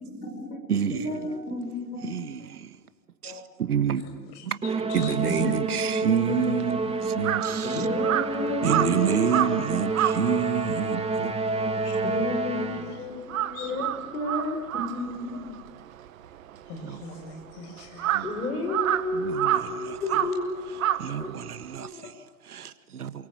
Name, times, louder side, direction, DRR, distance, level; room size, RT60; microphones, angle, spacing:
voice 1, 0.0-2.2 3.2-3.4 5.2-7.1 7.6-10.0 12.0-15.6 18.2-20.6 21.2-21.3 21.8-22.1, left 2 dB, 80° left, 7.4 m, -32 dB
voice 2, 0.7-1.1 2.0-2.8 3.2-4.6 4.9-6.8 7.2-7.8 8.6-11.4 16.8-17.0 18.1-18.3 19.1-20.0 21.0-23.3, right 8 dB, 75° right, 1.8 m, -28 dB
voice 3, 4.1-4.5 4.9-5.4 11.8-12.0 12.7-12.8 13.5-13.7 16.7-18.4, left 4 dB, 50° left, 7.6 m, -43 dB
Musical instrument, 4.6-13.1, right 3 dB, 15° right, 2.8 m, -29 dB
Crow, 6.3-12.8 13.1-21.8, right 11 dB, 60° right, 1.8 m, -30 dB
28.0 x 24.5 x 7.7 m
hypercardioid pair, 105°, 45 cm